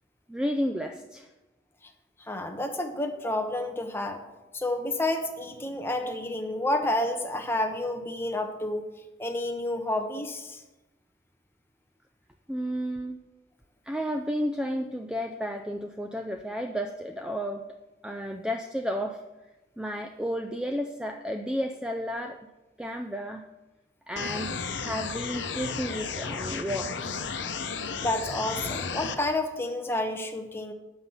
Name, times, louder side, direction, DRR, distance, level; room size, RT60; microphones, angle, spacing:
voice 1, 0.3-1.3 12.5-13.2 13.8-17.6 18.0-19.2 19.8-22.4 22.8-23.4 24.1-24.5 24.8-27.2, equal, 5° right, 5 dB, 0.4 m, -32 dB
voice 2, 2.3-4.2 4.5-8.9 9.2-10.6 28.0-30.7, left 1 dB, 15° left, 5 dB, 0.9 m, -30 dB
sound 1, 24.2-29.2, left 5 dB, 90° left, 0.8 m, -33 dB
9.4 x 5.7 x 7.0 m, 1.1 s
head